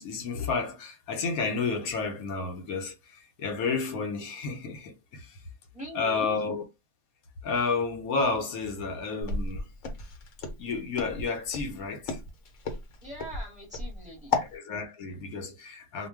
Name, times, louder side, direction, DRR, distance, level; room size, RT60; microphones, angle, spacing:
voice 1, 0.0-5.4 5.9-6.6 7.4-9.6 10.6-12.2 14.4-16.1, left 4 dB, 80° left, 1.1 m, -31 dB
voice 2, 5.7-6.3 13.0-14.4, right 1 dB, 5° right, 1.0 m, -42 dB
Walk footsteps, 9.2-14.5, left 3 dB, 65° left, 1.0 m, -33 dB
2.4 x 2.2 x 3.4 m
omnidirectional pair, 1.5 m